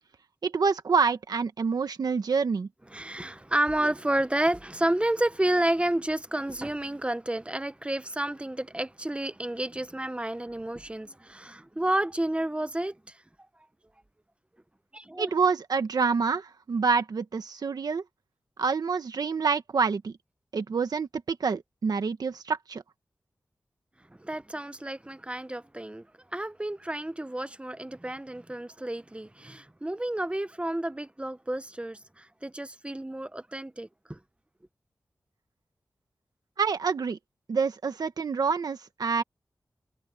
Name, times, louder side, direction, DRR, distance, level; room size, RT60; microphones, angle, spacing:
voice 1, 0.4-2.7 15.2-18.0 18.6-20.1 20.5-22.8 36.6-37.2 37.5-39.2, right 5 dB, 80° right, 1.4 m, -27 dB
voice 2, 2.9-13.0 14.9-15.3 24.2-26.1 26.3-34.2, right 1 dB, 15° right, 1.1 m, -30 dB
cardioid pair, 45°, 7 cm